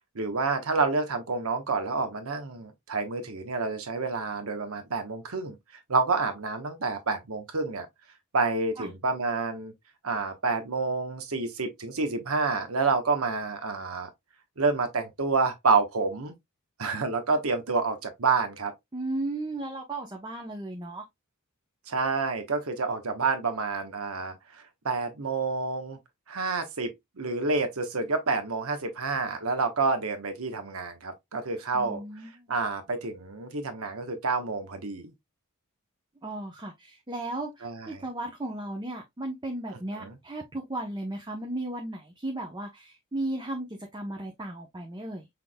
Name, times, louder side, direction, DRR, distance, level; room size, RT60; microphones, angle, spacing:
voice 1, 0.1-5.6 5.9-7.9 8.3-9.7 10.0-14.1 14.6-16.3 16.8-18.7 21.9-26.0 26.3-32.0 32.5-35.1 37.6-38.0 40.0-40.1, right 4 dB, 90° right, 1.1 m, -28 dB
voice 2, 18.9-21.0 31.7-32.5 36.2-45.3, right 1 dB, 20° right, 0.8 m, -35 dB
6.0 x 3.4 x 2.2 m
head